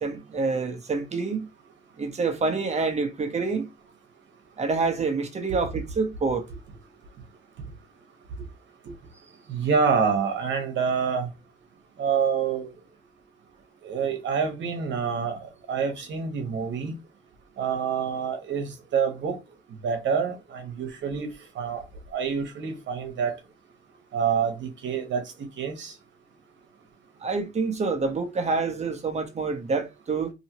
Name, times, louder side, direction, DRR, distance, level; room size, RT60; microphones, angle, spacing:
voice 1, 0.0-1.5 2.0-3.7 4.6-6.5 27.2-30.3, right 4 dB, 35° right, 0.9 m, -27 dB
voice 2, 9.5-11.3 12.0-12.7 13.8-17.0 17.6-19.4 19.8-21.3 21.5-21.8 22.1-23.4 24.1-25.2 25.6-25.9, right 6 dB, 70° right, 1.1 m, -27 dB
2.9 x 2.7 x 2.9 m
cardioid pair, 90°, 20 cm